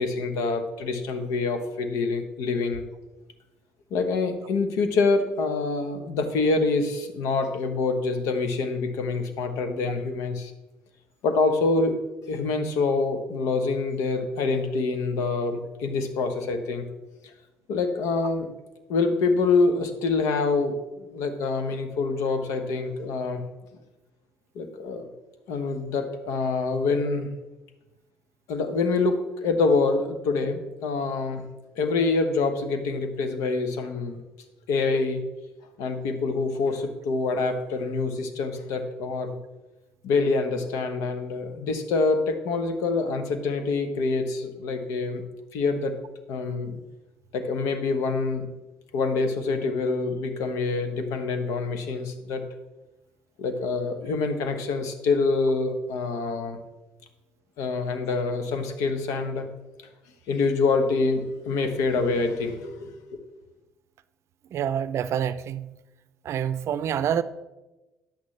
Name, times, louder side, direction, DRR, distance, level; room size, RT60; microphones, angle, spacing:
voice 1, 0.0-2.8 3.9-10.5 11.2-11.9 12.3-16.8 17.7-18.5 18.9-23.4 24.5-25.1 25.5-27.3 28.5-31.4 31.8-34.2 34.7-35.2 35.8-39.4 40.0-45.2 45.5-45.9 46.3-46.8 47.3-48.5 48.9-52.4 53.4-56.6 57.6-59.5 60.3-63.0, left 3 dB, 75° left, 1.1 m, -26 dB
voice 2, 64.5-65.7 66.3-67.2, right 9 dB, 60° right, 0.5 m, -27 dB
9.9 x 8.4 x 3.2 m
hypercardioid pair, 65°, 5 cm